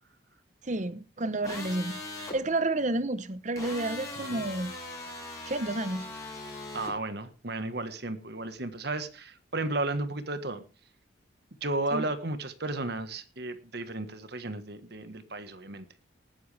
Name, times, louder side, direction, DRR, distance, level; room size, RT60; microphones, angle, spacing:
voice 1, 0.6-4.7 5.4-6.1 11.9-12.1, right 2 dB, 40° right, 1.0 m, -31 dB
sound 1, 1.4-2.4 3.6-6.9, left 2 dB, 15° left, 6.4 m, -40 dB
voice 2, 6.7-10.6 11.6-16.0, right 2 dB, 55° right, 1.5 m, -34 dB
19.5 x 9.4 x 3.4 m
head